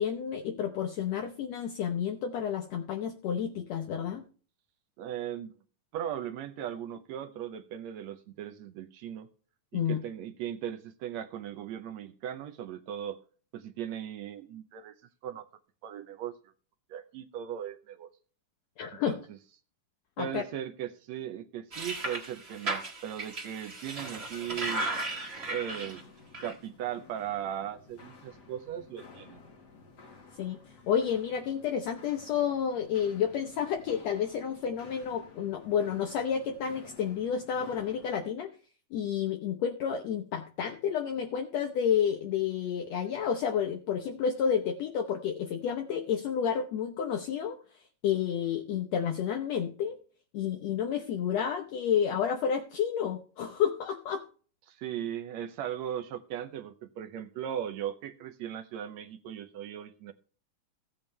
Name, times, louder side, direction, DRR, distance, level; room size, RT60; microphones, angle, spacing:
voice 1, 0.0-4.2 9.7-10.0 18.8-19.1 20.2-20.4 30.4-30.6 30.9-38.5 38.9-47.6 48.0-50.0 50.3-54.2, left 8 dB, 70° left, 4 dB, 1.9 m, -30 dB
voice 2, 5.0-5.5 5.9-9.3 9.7-13.2 13.5-15.0 15.2-15.5 15.8-16.3 16.9-18.1 19.1-19.2 20.2-24.9 25.5-26.1 26.4-29.4 54.7-60.1, right 10 dB, 75° right, 7 dB, 1.8 m, -38 dB
sound 1, 21.7-26.0 26.3-26.5, right 2 dB, 30° right, 1.3 m, -36 dB
Walk footsteps, 24.4-38.2, left 4 dB, 40° left, 1.8 m, -53 dB
15.5 x 8.9 x 3.3 m, 0.40 s
omnidirectional pair, 3.5 m